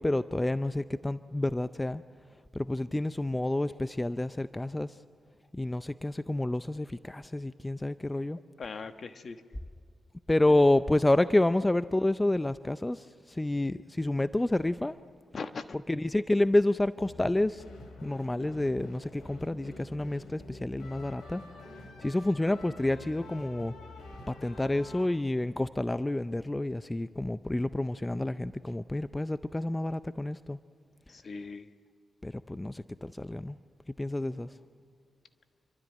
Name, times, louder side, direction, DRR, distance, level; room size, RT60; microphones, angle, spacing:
voice 1, 0.0-2.0 2.5-5.0 5.5-8.4 10.3-15.0 15.9-17.6 18.0-21.4 21.7-23.7 24.3-30.6 32.2-33.6 33.9-34.6, left 1 dB, 15° left, 13 dB, 0.5 m, -29 dB
voice 2, 8.3-9.4 15.3-15.8 31.1-31.7, left 4 dB, 55° left, 9 dB, 1.3 m, -40 dB
sound 1, 17.0-25.1, left 2 dB, 75° left, 4.3 m, -47 dB
28.0 x 12.5 x 9.0 m, 2.3 s
cardioid pair, 60°, 0 cm